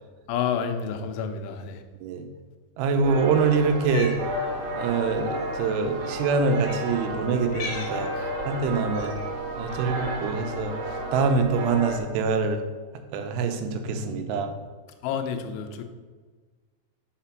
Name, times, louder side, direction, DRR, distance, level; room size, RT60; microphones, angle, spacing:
voice 1, 0.3-1.8 15.0-15.8, left 7 dB, 85° left, 7 dB, 3.1 m, -29 dB
voice 2, 2.8-4.2 4.8-8.1 8.5-9.1 9.6-10.7 11.1-12.6 13.1-14.5, right 4 dB, 85° right, 6 dB, 3.2 m, -25 dB
sound 1, 3.0-12.0, right 1 dB, 65° right, 2.9 m, -32 dB
Cat, 3.7-4.2 5.3-5.4 6.6-6.9 7.5-8.0 8.9-9.3, left 3 dB, 70° left, 2.0 m, -37 dB
5.9 x 5.7 x 5.8 m, 1.4 s
omnidirectional pair, 5.4 m